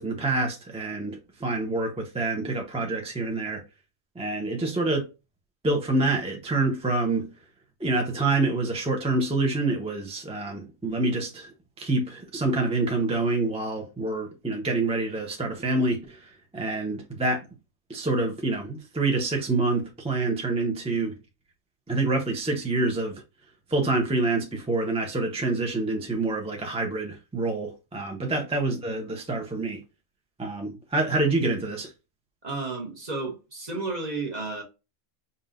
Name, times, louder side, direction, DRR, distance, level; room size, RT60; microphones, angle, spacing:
voice 1, 0.0-3.6 4.1-5.1 5.6-7.3 7.8-17.5 17.9-21.2 21.9-23.2 23.7-29.8 30.4-31.9, right 2 dB, 5° right, 0.4 m, -27 dB
voice 2, 32.4-34.6, right 3 dB, 30° right, 1.0 m, -32 dB
5.4 x 2.7 x 2.4 m
omnidirectional pair, 1.5 m